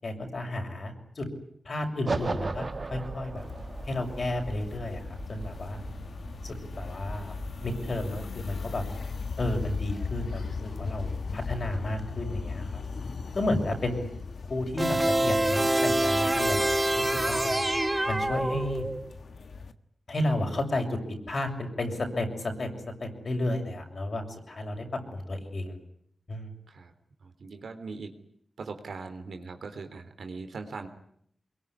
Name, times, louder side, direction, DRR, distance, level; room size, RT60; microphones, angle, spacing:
voice 1, 0.0-1.3 1.6-3.4 3.8-5.0 5.3-5.8 6.4-7.3 7.6-8.9 9.4-12.8 13.3-14.1 14.5-17.7 18.1-18.9 20.1-21.0 21.3-22.7 23.0-24.8 25.1-25.8 26.3-26.5, left 1 dB, 65° left, 3 dB, 6.8 m, -32 dB
sound 1, 2.1-8.2, right 3 dB, 55° right, 1.6 m, -37 dB
sound 2, 3.4-19.7, left 4 dB, 80° left, 1.5 m, -38 dB
sound 3, 14.8-19.1, right 1 dB, 20° right, 1.5 m, -26 dB
voice 2, 27.2-28.2 28.6-30.9, right 4 dB, 90° right, 7 dB, 3.4 m, -40 dB
23.5 x 22.5 x 10.0 m, 0.69 s
cardioid pair, 60°, 0 cm